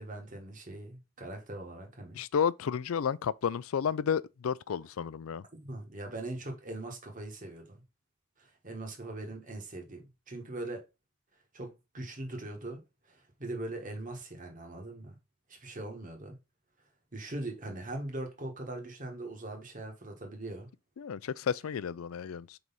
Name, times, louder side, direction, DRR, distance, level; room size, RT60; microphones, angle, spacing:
voice 1, 0.0-2.2 5.6-7.8 8.4-10.8 11.5-15.1 15.5-16.4 17.1-20.7, right 2 dB, 40° right, 1.4 m, -41 dB
voice 2, 2.1-5.4 21.0-22.6, left 7 dB, 75° left, 0.4 m, -32 dB
4.7 x 3.9 x 5.5 m
head